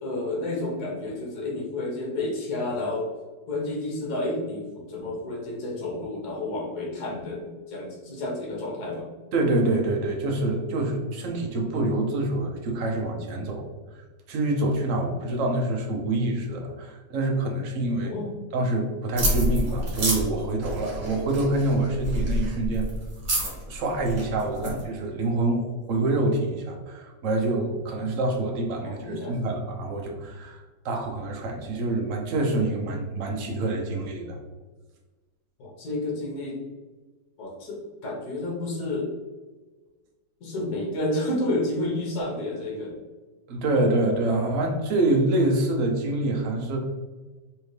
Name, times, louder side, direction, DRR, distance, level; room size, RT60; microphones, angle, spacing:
voice 1, 0.0-3.0 3.5-9.0 18.0-18.4 24.6-24.7 28.8-29.3 35.6-36.6 37.4-39.1 40.4-42.9, left 2 dB, 65° left, -3 dB, 1.7 m, -30 dB
voice 2, 9.3-13.7 14.3-18.1 18.5-22.9 23.7-34.4 43.5-46.8, right 2 dB, 60° right, 1 dB, 0.9 m, -26 dB
sound 1, 19.2-24.8, equal, 40° right, 1.4 m, -28 dB
3.6 x 3.3 x 3.2 m, 1.3 s
omnidirectional pair, 1.9 m